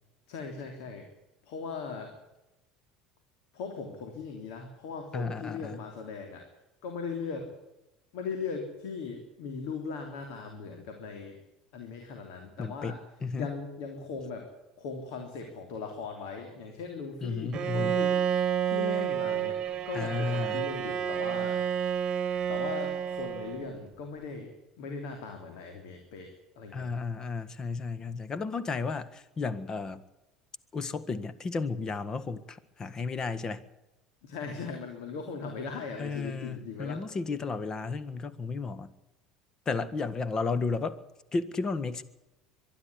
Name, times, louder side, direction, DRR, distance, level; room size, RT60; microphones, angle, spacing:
voice 1, 0.3-1.1 1.4-2.1 3.5-6.4 6.8-7.5 8.1-11.4 11.7-13.0 13.3-14.5 14.8-18.2 18.6-19.6 19.9-21.6 22.5-26.9 34.2-37.0, left 5 dB, 70° left, 4 dB, 3.2 m, -39 dB
voice 2, 5.1-5.8 12.6-13.5 17.2-18.0 19.9-20.6 26.7-30.0 30.7-33.6 36.0-38.9 39.6-41.0 41.3-42.0, left 4 dB, 30° left, 15 dB, 1.7 m, -33 dB
Bowed string instrument, 17.5-23.8, right 9 dB, 45° right, 1.4 m, -30 dB
23.5 x 11.0 x 9.9 m, 0.98 s
hypercardioid pair, 70°, 2 cm